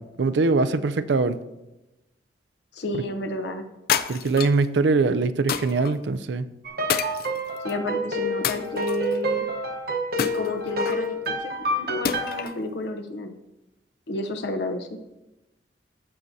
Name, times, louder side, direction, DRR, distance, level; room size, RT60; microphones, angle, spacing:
voice 1, 0.0-1.4 2.9-3.0 4.1-6.5, right 3 dB, 80° right, 12 dB, 0.5 m, -22 dB
voice 2, 2.7-3.6 7.6-9.4 10.2-13.3 14.1-15.0, left 2 dB, 75° left, 6 dB, 0.8 m, -31 dB
sound 1, 3.9-4.7 5.5-5.9 6.9-7.7 8.4-9.2 10.2-11.1 12.1-12.6, left 8 dB, 55° left, 0.4 m, -28 dB
sound 2, 6.6-12.4, equal, 55° right, 1.0 m, -28 dB
14.0 x 7.2 x 2.7 m, 1.0 s
head